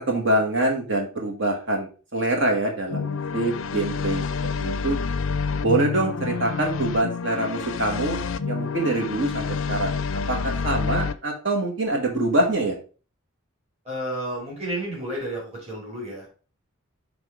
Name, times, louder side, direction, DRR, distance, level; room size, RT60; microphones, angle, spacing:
voice 1, 0.0-4.2 4.6-5.0 5.6-9.9 10.3-12.7, right 2 dB, 60° right, 2 dB, 1.4 m, -25 dB
sound 1, 2.9-11.1, left 5 dB, 70° left, 0.4 m, -28 dB
voice 2, 13.8-16.3, right 1 dB, 30° right, -4 dB, 2.8 m, -31 dB
6.1 x 3.5 x 4.8 m, 0.36 s
head